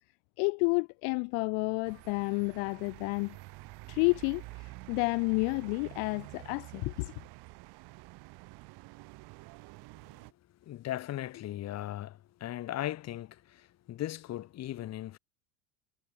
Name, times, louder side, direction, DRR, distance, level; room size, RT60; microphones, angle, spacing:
voice 1, 0.4-3.4 3.9-7.1, left 40 dB or more, 50° left, 1.0 m, -30 dB
sound 1, 1.8-10.3, right 23 dB, 50° right, 8.0 m, -49 dB
voice 2, 10.6-15.2, left 13 dB, 30° left, 1.4 m, -38 dB
hypercardioid pair, 90°, 48 cm